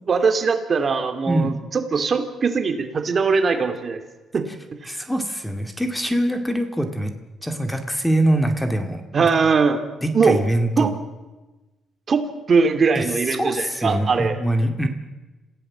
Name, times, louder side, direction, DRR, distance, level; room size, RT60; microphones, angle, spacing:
voice 1, 0.1-4.0 4.3-4.5 4.8-4.9 9.1-9.8 10.1-10.4 10.8-10.9 12.1-14.4, right 5 dB, 45° right, 7 dB, 2.7 m, -21 dB
voice 2, 1.3-1.6 4.9-7.1 7.4-9.3 10.0-10.9 13.0-14.9, right 1 dB, 5° left, 7 dB, 2.3 m, -23 dB
26.5 x 16.0 x 7.5 m, 1.1 s
cardioid pair, 90°, 0 cm